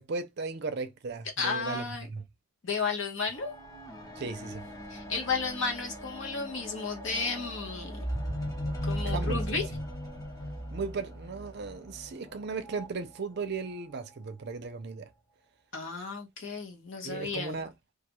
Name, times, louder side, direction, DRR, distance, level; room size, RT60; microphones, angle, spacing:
voice 1, 0.0-2.2 4.2-4.6 9.0-9.6 10.7-15.1 17.0-17.7, right 4 dB, 50° right, 0.5 m, -36 dB
voice 2, 1.4-2.1 2.6-3.5 4.9-8.1 8.9-9.7 15.7-17.5, left 4 dB, 60° left, 0.9 m, -33 dB
sound 1, 3.3-12.9 13.7-13.8, equal, 15° left, 0.7 m, -37 dB
2.4 x 2.3 x 2.9 m
head